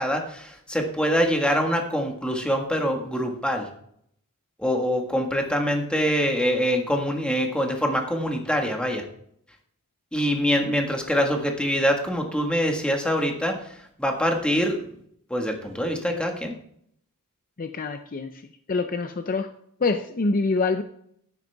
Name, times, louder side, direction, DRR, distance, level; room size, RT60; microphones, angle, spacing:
voice 1, 0.0-3.7 4.6-9.0 10.1-13.6 14.0-14.8 15.3-16.5, equal, 5° left, 2 dB, 1.6 m, -24 dB
voice 2, 17.6-18.3 18.7-19.5 19.8-20.8, left 3 dB, 40° left, 8 dB, 0.6 m, -25 dB
11.5 x 10.0 x 3.5 m, 0.69 s
head